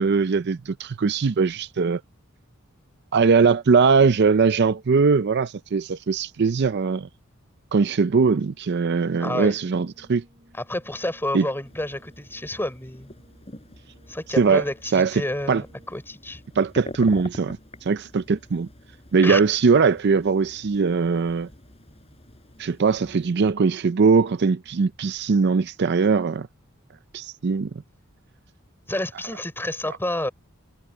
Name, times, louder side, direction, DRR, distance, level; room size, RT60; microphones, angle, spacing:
voice 1, 0.0-2.0 3.1-7.1 7.7-10.2 11.3-11.5 14.4-14.6 14.9-15.2 15.5-15.6 16.6-17.6 17.8-18.7 19.1-21.5 22.6-26.5 27.1-27.7, right 5 dB, 55° right, 0.5 m, -20 dB
voice 2, 9.2-9.5 10.5-13.1 14.1-15.7 15.9-16.4 19.2-19.4 28.9-30.3, left 1 dB, 10° left, 3.6 m, -29 dB
Brass instrument, 9.8-16.2, equal, 30° right, 6.6 m, -58 dB
sound 1, 11.6-23.3, left 1 dB, 30° left, 4.9 m, -45 dB
head